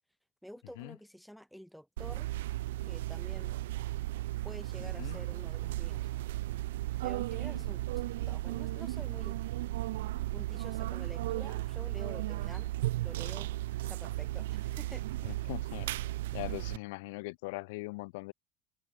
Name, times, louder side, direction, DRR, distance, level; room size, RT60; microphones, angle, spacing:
voice 1, 0.4-2.3 2.9-3.6 4.4-6.1 7.0-9.4 10.3-12.7 13.0-13.5 13.9-15.0, equal, ahead, 4.0 m, -49 dB
sound 1, 2.0-16.8, right 16 dB, 70° right, 0.4 m, -35 dB
voice 2, 4.8-5.2 7.5-7.6 15.2-15.9 16.3-18.3, left 24 dB, 65° left, 1.6 m, -41 dB
hypercardioid pair, 75°, 0 cm